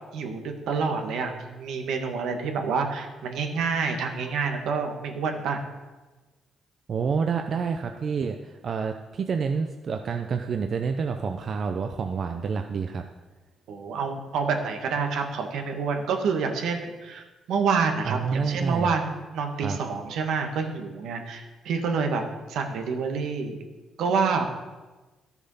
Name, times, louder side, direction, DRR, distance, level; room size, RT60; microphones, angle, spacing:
voice 1, 0.1-5.6 13.7-22.2 22.5-23.6 24.0-24.5, right 5 dB, 80° right, 4 dB, 1.5 m, -28 dB
voice 2, 6.9-13.0 18.0-18.9 19.6-19.8, right 5 dB, 50° right, 5 dB, 0.6 m, -28 dB
12.5 x 7.0 x 5.6 m, 1.2 s
cardioid pair, 90°, 0 cm